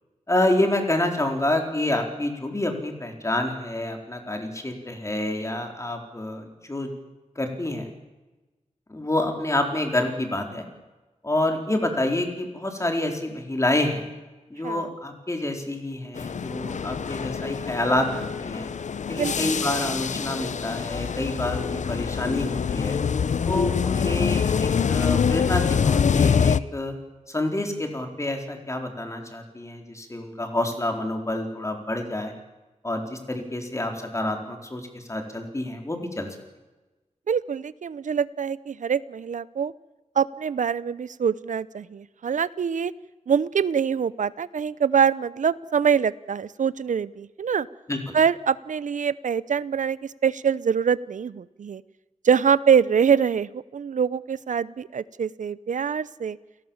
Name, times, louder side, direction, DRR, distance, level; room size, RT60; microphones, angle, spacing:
voice 1, 0.3-6.9 7.4-7.9 8.9-10.7 11.2-14.1 14.5-18.7 19.1-23.0 23.5-26.9 27.3-32.3 32.8-36.3 47.9-48.2, left 1 dB, 25° left, 3 dB, 4.3 m, -28 dB
sound 1, 16.2-26.6, left 6 dB, 70° left, 0.7 m, -25 dB
voice 2, 37.3-39.7 40.1-42.9 43.3-47.7 48.1-51.8 52.2-56.4, right 7 dB, 85° right, 18 dB, 0.8 m, -24 dB
30.0 x 18.0 x 7.3 m, 1.1 s
wide cardioid pair, 95°, 13 cm